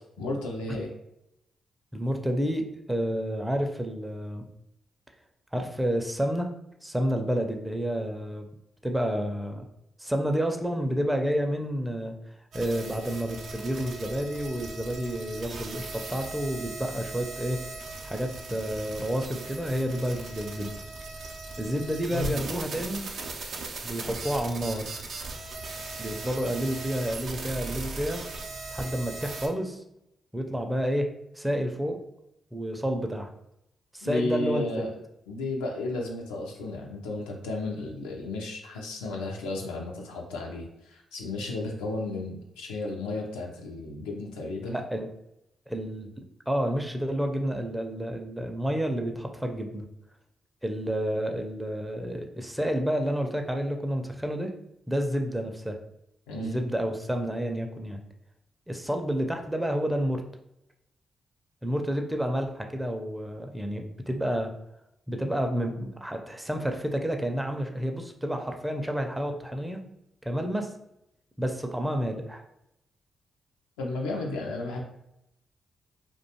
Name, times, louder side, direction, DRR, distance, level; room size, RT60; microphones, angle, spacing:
voice 1, 0.2-0.9 22.1-22.4 34.0-34.9 35.3-44.8 56.3-56.6 73.8-74.8, left 2 dB, 90° left, 0 dB, 0.4 m, -33 dB
voice 2, 1.9-4.5 5.5-6.5 6.8-8.5 8.8-9.7 10.0-12.2 12.5-17.6 18.0-20.8 21.6-23.1 23.8-24.9 26.0-28.2 28.7-29.8 30.3-31.1 31.4-32.0 32.5-33.3 33.9-34.9 44.6-45.1 45.7-49.9 50.6-54.5 54.9-55.8 56.4-58.0 58.7-60.2 61.6-64.5 65.1-69.8 70.2-70.7 71.4-72.4, equal, 10° right, 4 dB, 0.4 m, -30 dB
sound 1, 12.5-29.5, right 3 dB, 70° right, 0.4 m, -38 dB
2.4 x 2.2 x 2.8 m, 0.82 s
hypercardioid pair, 45°, 0 cm